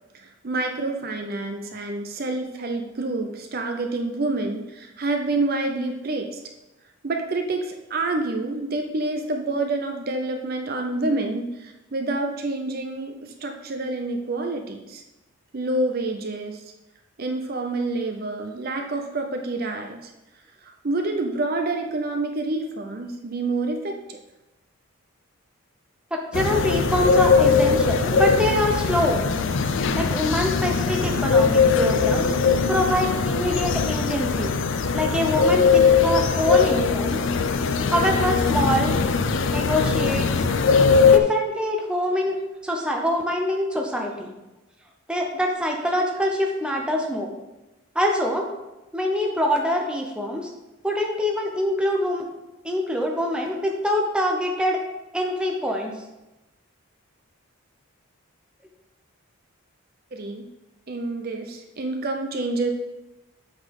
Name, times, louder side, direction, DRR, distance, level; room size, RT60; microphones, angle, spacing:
voice 1, 0.1-6.4 7.0-15.0 15.5-16.6 17.2-20.1 20.6-24.2 60.1-60.4 60.9-62.7, right 2 dB, 45° right, 4 dB, 0.5 m, -28 dB
sound 1, 26.3-41.2, left 5 dB, 60° left, 0.4 m, -20 dB
voice 2, 26.3-29.2 30.0-32.3 32.7-34.5 34.9-37.2 37.9-39.0 39.5-40.4 41.1-44.3 45.1-47.3 47.9-48.5 48.9-50.5 50.8-52.2 52.6-54.8 55.1-55.9, left 1 dB, 5° right, 0 dB, 0.8 m, -24 dB
8.1 x 4.0 x 5.4 m, 1.0 s
head